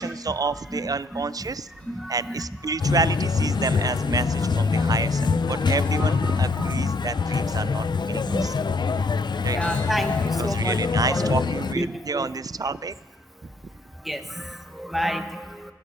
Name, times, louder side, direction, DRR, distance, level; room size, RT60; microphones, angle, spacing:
voice 1, 0.0-1.7 2.1-8.5 9.0-9.1 9.4-10.1 10.4-12.9 13.4-13.5 14.4-14.5, right 4 dB, 55° right, 17 dB, 0.4 m, -29 dB
voice 2, 0.7-1.5 1.9-2.4 3.4-3.5 4.1-4.2 4.5-4.6 5.2-5.4 6.0-6.9 8.3-8.5 9.5-10.8 11.1-11.4 11.7-11.9 12.1-12.3 14.0-15.7, equal, ahead, 7 dB, 1.0 m, -31 dB
sound 1, 1.8-2.3 2.6-2.7 3.6-4.3 4.6-4.8 5.1-5.2 5.5-5.6 5.9-7.2 7.6-7.7 7.9-8.0 8.2-8.3 8.8-11.4 11.9-12.0 12.4-12.5, right 1 dB, 20° left, 3.2 m, -48 dB
sound 2, 2.8-11.7, left 5 dB, 85° left, 0.4 m, -24 dB
21.0 x 8.3 x 5.5 m, 1.4 s
wide cardioid pair, 65°, 7 cm